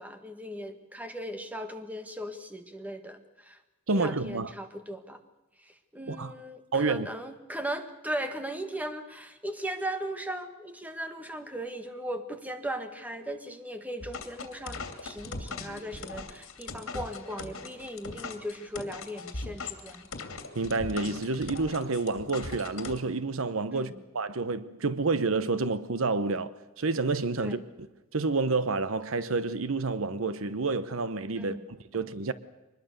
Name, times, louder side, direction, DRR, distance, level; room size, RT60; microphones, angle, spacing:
voice 1, 0.0-3.6 3.9-5.2 5.6-20.0 23.7-24.0 27.4-27.7 31.3-31.7, right 1 dB, 10° right, 1.7 m, -38 dB
voice 2, 3.9-4.5 6.1-6.3 6.7-7.1 20.5-27.9 28.1-32.3, right 3 dB, 70° right, 0.9 m, -29 dB
sound 1, 14.0-23.0, left 3 dB, 70° left, 2.7 m, -40 dB
24.5 x 20.5 x 6.7 m
head